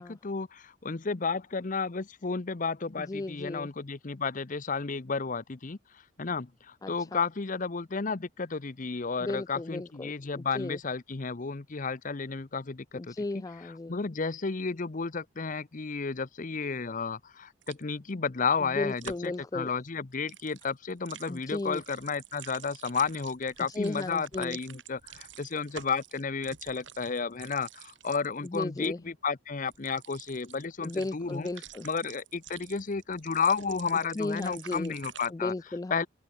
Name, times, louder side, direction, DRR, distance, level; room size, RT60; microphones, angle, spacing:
voice 1, 0.0-5.8 6.2-13.4 13.9-31.5 31.8-35.5 35.9-36.1, left 5 dB, 40° left, 0.7 m, -32 dB
voice 2, 3.0-3.7 6.8-7.2 9.2-10.8 12.9-13.9 18.6-19.7 21.3-21.8 23.7-24.6 28.4-29.0 30.8-31.9 33.9-35.0 35.3-36.1, left 2 dB, 20° left, 0.3 m, -35 dB
sound 1, 17.6-17.8 19.0-19.3 20.1-28.9 29.7-35.3, right 9 dB, 70° right, 5.0 m, -48 dB
open air
head